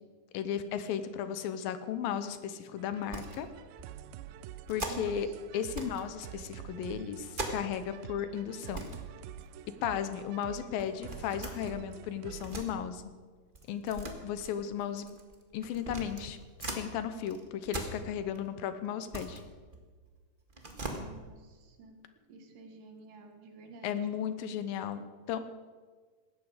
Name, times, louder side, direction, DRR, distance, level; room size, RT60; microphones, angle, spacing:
voice 1, 0.3-3.5 4.7-5.3 5.5-8.9 9.8-13.0 13.7-15.1 15.5-19.4 23.8-25.4, left 9 dB, 85° left, 11 dB, 2.7 m, -35 dB
sound 1, 2.8-12.5, right 12 dB, 85° right, 2.4 m, -47 dB
sound 2, 3.0-3.4 3.8-3.9 4.7-5.2 5.7-6.1 6.4-7.9 8.2-8.3 8.6-9.0 9.4-10.0 10.8-12.7 13.5-16.9 17.2-18.5 18.8-20.1 20.5-21.0, right 2 dB, 45° right, 0.6 m, -41 dB
voice 2, 4.9-5.2 20.7-22.0 22.3-24.3, right 3 dB, 70° right, 5 dB, 3.2 m, -50 dB
18.0 x 13.5 x 5.1 m, 1.5 s
omnidirectional pair, 4.1 m